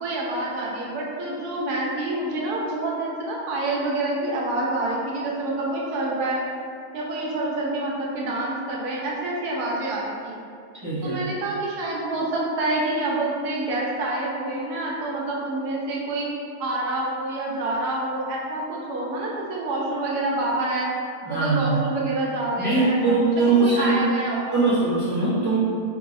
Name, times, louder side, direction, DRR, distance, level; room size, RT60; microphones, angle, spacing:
voice 1, 0.0-6.5 6.9-10.4 11.0-16.3 16.6-20.9 21.3-23.2 23.6-24.6, right 2 dB, 90° right, -4 dB, 1.2 m, -27 dB
voice 2, 10.7-11.2 21.2-21.8 22.6-24.0 24.5-25.6, right 3 dB, 25° right, -12 dB, 0.4 m, -21 dB
4.7 x 2.0 x 2.5 m, 2.4 s
omnidirectional pair, 1.6 m